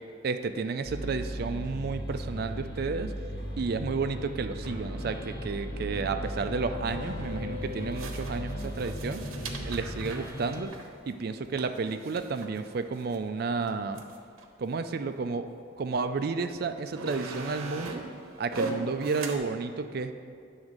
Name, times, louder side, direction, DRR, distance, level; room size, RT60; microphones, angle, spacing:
voice 1, 0.2-3.1 3.6-9.2 9.6-10.7 11.1-14.0 14.6-15.5 15.8-18.0 18.4-20.1, right 4 dB, 50° right, 9 dB, 0.3 m, -31 dB
sound 1, 0.8-10.7, equal, 65° left, 1.3 m, -36 dB
sound 2, 6.7-6.8 7.9-13.2 13.7-13.8 14.0-14.4 15.2-15.3 16.2-16.3 16.7-19.4, right 3 dB, 90° right, 0.8 m, -39 dB
9.0 x 3.5 x 6.4 m, 2.3 s
head